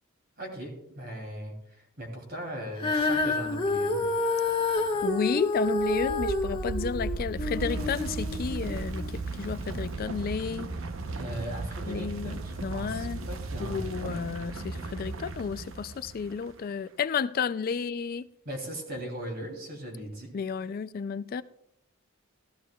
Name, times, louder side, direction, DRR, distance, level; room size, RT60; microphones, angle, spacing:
voice 1, 0.4-4.1 11.1-14.2 18.4-20.3, equal, 50° right, 2 dB, 3.0 m, -39 dB
Female singing, 2.8-9.1 9.8-9.9, left 2 dB, 25° left, 1.7 m, -29 dB
voice 2, 5.0-10.7 11.8-13.3 13.6-18.2 20.3-21.4, left 6 dB, 45° left, 14 dB, 0.3 m, -32 dB
sound 1, 5.7-16.5, right 3 dB, 70° right, 0.8 m, -36 dB
14.5 x 14.0 x 2.3 m, 0.75 s
head